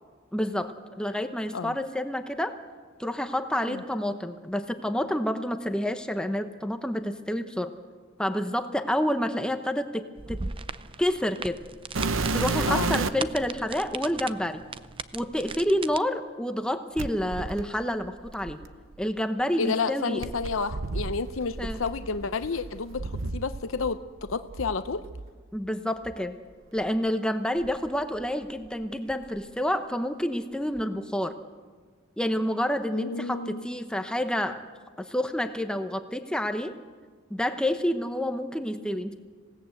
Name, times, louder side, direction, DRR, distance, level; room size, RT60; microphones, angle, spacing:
voice 1, 0.3-2.6 3.0-7.7 8.2-10.4 11.0-11.6 12.3-14.6 15.1-18.6 19.0-20.3 21.6-21.8 25.5-26.3 26.7-31.3 32.2-34.6 35.0-36.7 37.3-39.2, equal, 5° left, 7 dB, 0.9 m, -29 dB
sound 1, 10.2-16.0, right 4 dB, 25° right, 0.6 m, -38 dB
sound 2, 11.9-13.3 14.2-14.3 17.0-19.0 20.2-23.9 24.2-25.3 26.0-26.2 26.8-26.9 27.6-28.7 28.9-29.4 30.8-30.9, right 3 dB, 70° right, 0.8 m, -32 dB
voice 2, 12.6-13.0 19.6-24.0 24.3-25.0 32.9-33.6, left 4 dB, 75° left, 10 dB, 0.7 m, -30 dB
27.0 x 17.0 x 7.9 m, 1.5 s
head